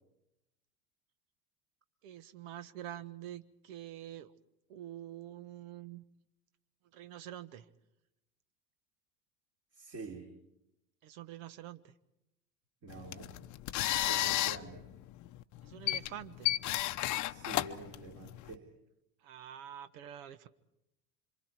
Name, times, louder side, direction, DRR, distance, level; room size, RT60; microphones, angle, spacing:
voice 1, 2.0-4.3 4.7-6.0 6.9-7.7 11.0-11.9 15.6-16.6 19.2-20.5, right 11 dB, 60° right, 13 dB, 1.4 m, -46 dB
voice 2, 9.7-10.3 12.8-13.4 14.1-14.9 17.3-18.7, right 3 dB, 30° right, 2 dB, 3.6 m, -47 dB
sound 1, 12.9-18.5, left 15 dB, 40° left, 0.9 m, -34 dB
27.0 x 26.5 x 4.6 m, 0.86 s
hypercardioid pair, 80°, 46 cm